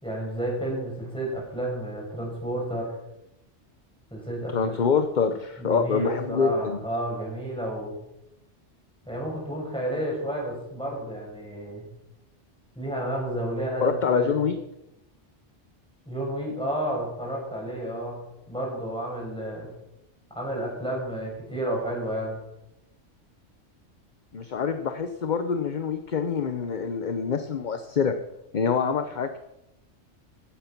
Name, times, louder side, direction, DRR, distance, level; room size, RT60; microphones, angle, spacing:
voice 1, 0.0-3.0 4.1-4.7 5.6-7.9 9.0-11.9 12.7-14.3 16.1-18.2 18.5-19.7 20.3-22.4, right 1 dB, 5° left, -3 dB, 6.4 m, -31 dB
voice 2, 4.5-6.8 13.8-14.5 24.3-28.1 28.5-29.4, left 6 dB, 45° left, 8 dB, 0.9 m, -25 dB
15.0 x 10.5 x 6.0 m, 0.86 s
omnidirectional pair, 1.3 m